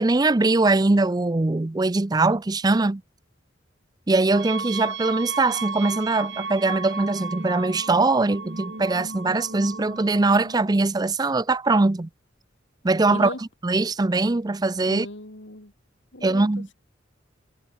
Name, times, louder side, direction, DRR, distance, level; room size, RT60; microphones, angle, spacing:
voice 1, 0.0-3.0 4.1-12.1 12.8-13.3 13.6-15.1 16.2-16.7, right 3 dB, 20° right, 0.5 m, -21 dB
sound 1, 4.3-10.7, right 4 dB, 65° right, 2.5 m, -34 dB
voice 2, 13.1-13.4 14.9-15.7 16.1-16.7, left 2 dB, 70° left, 3.4 m, -37 dB
head